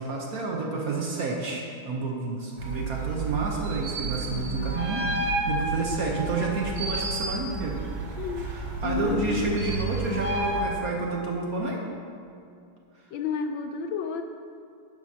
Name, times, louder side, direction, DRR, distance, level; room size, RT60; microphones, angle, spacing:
voice 1, 0.0-7.8 8.4-11.8, right 3 dB, 55° right, -1 dB, 1.2 m, -30 dB
sound 1, 2.6-10.7, right 3 dB, 85° right, 2.0 m, -31 dB
voice 2, 4.2-4.8 8.2-9.6 13.1-14.2, left 6 dB, 75° left, 6 dB, 1.2 m, -32 dB
11.5 x 10.5 x 2.9 m, 2.6 s
omnidirectional pair, 2.3 m